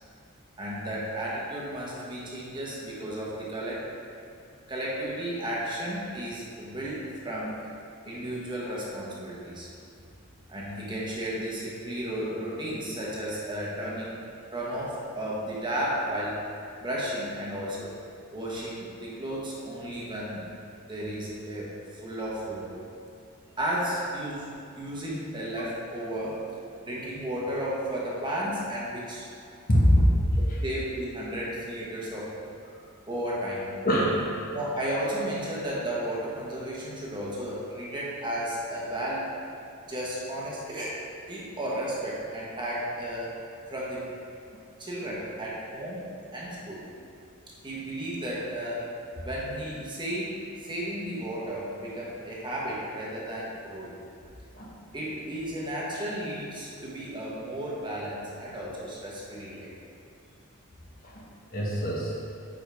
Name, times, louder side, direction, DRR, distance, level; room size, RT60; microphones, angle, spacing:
voice 1, 0.6-3.8 4.7-7.7 8.0-9.7 10.5-14.2 14.5-16.4 16.8-17.9 18.3-20.4 20.9-21.7 22.0-22.7 23.6-24.5 24.8-26.4 26.8-29.3 30.6-32.3 33.1-33.7 34.5-39.3 39.9-41.0 41.3-43.4 43.7-44.0 44.8-46.0 46.3-46.8 47.6-48.9 49.2-53.9 54.9-59.7, right 1 dB, 20° right, -6 dB, 1.3 m, -33 dB
voice 2, 29.7-30.6 33.8-34.5 54.5-54.7 61.0-61.2 61.5-62.1, equal, 45° left, -5 dB, 1.4 m, -23 dB
9.0 x 5.0 x 3.6 m, 2.5 s
head